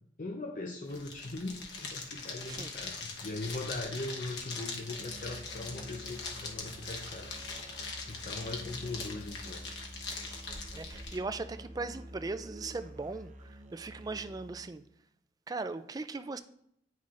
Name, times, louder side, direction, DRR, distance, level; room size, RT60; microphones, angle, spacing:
voice 1, 0.2-7.3 8.1-9.6, left 2 dB, 50° left, 0.6 m, -40 dB
sound 1, 0.8-11.2, left 4 dB, 85° left, 1.1 m, -42 dB
Musical instrument, 5.0-14.8, right 1 dB, 45° right, 0.7 m, -49 dB
voice 2, 10.7-14.8 15.5-16.4, right 3 dB, 20° right, 0.3 m, -39 dB
9.6 x 5.7 x 2.5 m
head